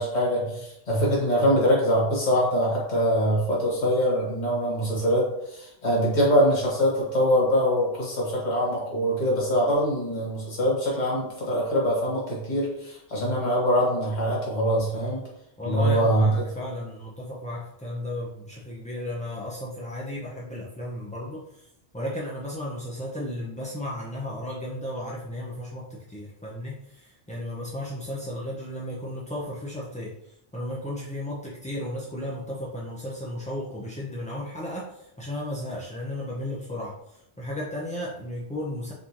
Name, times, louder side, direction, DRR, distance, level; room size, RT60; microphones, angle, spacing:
voice 1, 0.0-15.2 15.6-16.3, equal, 40° left, -5 dB, 1.6 m, -23 dB
voice 2, 15.6-21.7 21.9-30.1 30.5-38.9, left 1 dB, 10° left, -6 dB, 0.3 m, -34 dB
4.2 x 3.7 x 2.9 m, 0.80 s
omnidirectional pair, 1.2 m